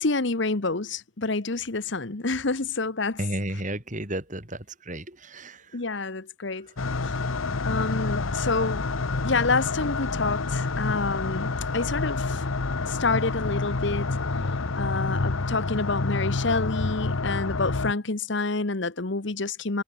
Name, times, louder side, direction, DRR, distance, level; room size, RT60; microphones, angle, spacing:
voice 1, 0.0-3.2 5.7-6.7 7.0-7.1 7.6-8.9 9.2-12.4 12.9-14.4 14.8-19.8, left 3 dB, 60° left, 1.2 m, -28 dB
voice 2, 3.2-5.8 6.5-6.8, right 1 dB, 35° right, 4.6 m, -33 dB
sound 1, 6.8-17.9, left 3 dB, 80° left, 1.0 m, -28 dB
head